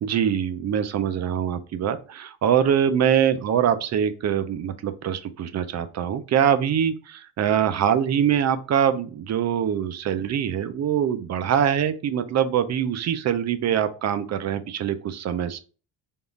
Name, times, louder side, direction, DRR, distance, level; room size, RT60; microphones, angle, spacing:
voice 1, 0.0-15.6, right 9 dB, 40° right, 10 dB, 0.4 m, -23 dB
3.5 x 2.4 x 3.9 m, 0.37 s
cardioid pair, 160°, 41 cm